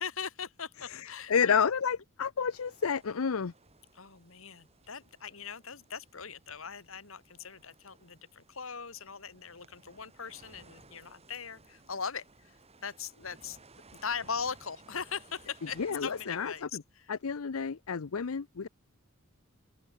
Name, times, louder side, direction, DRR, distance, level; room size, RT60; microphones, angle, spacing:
voice 1, 0.0-1.6 3.9-12.6 12.8-13.6 14.0-17.1, left 6 dB, 70° left, 2.2 m, -40 dB
voice 2, 0.9-3.5 15.8-16.8 17.1-18.7, left 6 dB, 85° left, 0.6 m, -30 dB
sound 1, 2.5-16.6, right 3 dB, 30° right, 3.0 m, -59 dB
open air
head